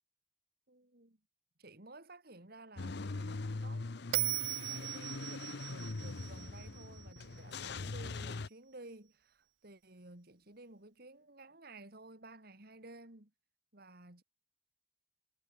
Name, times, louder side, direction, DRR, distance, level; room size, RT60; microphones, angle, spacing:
voice 1, 0.7-1.2 1.6-4.0 4.6-13.3 13.7-14.2, right 2 dB, 55° right, 3.2 m, -54 dB
Car / Engine starting / Idling, 2.8-8.5, left 3 dB, 60° left, 0.8 m, -42 dB
Bell, 4.1-7.4, right 17 dB, 85° right, 0.5 m, -38 dB
head